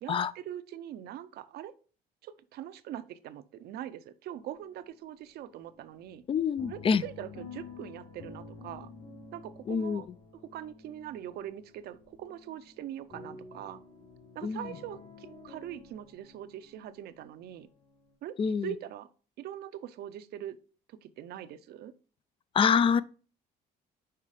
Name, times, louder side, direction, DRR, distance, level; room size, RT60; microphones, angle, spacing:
voice 1, 0.0-1.7 2.2-6.2 6.7-8.9 9.3-10.1 10.3-13.8 14.3-17.7 18.2-18.3 18.6-19.1 19.4-20.6 20.9-21.9, right 11 dB, 70° right, 0.6 m, -42 dB
sound 1, 4.3-5.1 5.3-18.1, left 3 dB, 75° left, 3.5 m, -50 dB
voice 2, 6.3-7.0 9.7-10.0 14.4-14.6 18.4-18.7 22.5-23.0, left 6 dB, 30° left, 0.4 m, -26 dB
5.7 x 4.6 x 4.9 m
cardioid pair, 110°, 17 cm